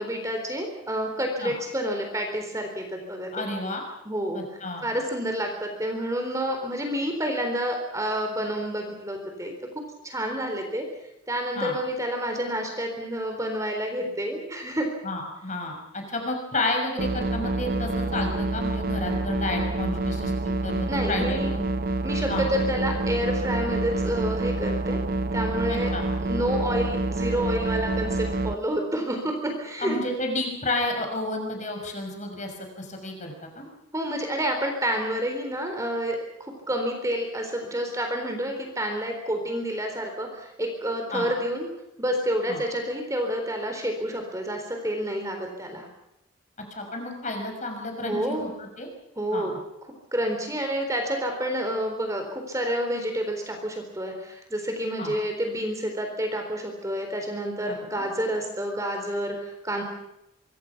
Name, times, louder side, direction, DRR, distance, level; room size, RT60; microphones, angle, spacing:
voice 1, 0.0-3.5 4.1-9.5 10.0-10.8 11.3-14.9 20.9-21.5 22.0-25.0 25.3-25.9 26.2-30.0 33.9-41.7 42.0-45.9 48.0-48.5 49.2-49.5 50.1-59.8, equal, 15° right, 4 dB, 3.9 m, -29 dB
voice 2, 3.3-3.8 4.3-4.8 11.6-11.7 15.0-21.6 22.3-22.5 25.7-26.0 29.8-33.7 41.1-41.3 42.5-42.6 46.8-48.9 49.3-49.5 55.0-55.1 57.7-58.0, left 2 dB, 35° left, 3 dB, 6.1 m, -31 dB
sound 1, 17.0-28.6, right 2 dB, 45° right, 0.8 m, -27 dB
25.5 x 24.5 x 6.0 m, 0.88 s
head